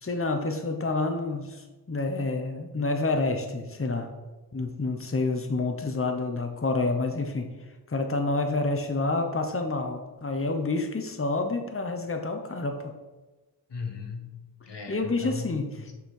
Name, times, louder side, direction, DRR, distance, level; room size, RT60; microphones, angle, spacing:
voice 1, 0.0-4.1 4.5-7.5 7.9-12.9 14.9-15.9, left 3 dB, 30° left, 4 dB, 1.0 m, -28 dB
voice 2, 13.7-15.9, left 5 dB, 85° left, 4 dB, 1.1 m, -37 dB
6.6 x 5.5 x 4.7 m, 1.2 s
wide cardioid pair, 65°, 41 cm